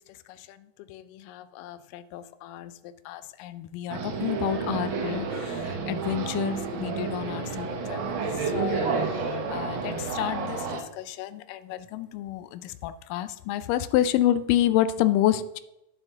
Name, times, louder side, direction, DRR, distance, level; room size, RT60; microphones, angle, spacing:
voice 1, 0.9-15.6, left 12 dB, 85° left, 13 dB, 2.2 m, -29 dB
sound 1, 3.9-10.8, right 4 dB, 80° right, 1.1 m, -30 dB
9.7 x 8.1 x 3.4 m, 0.88 s
omnidirectional pair, 3.8 m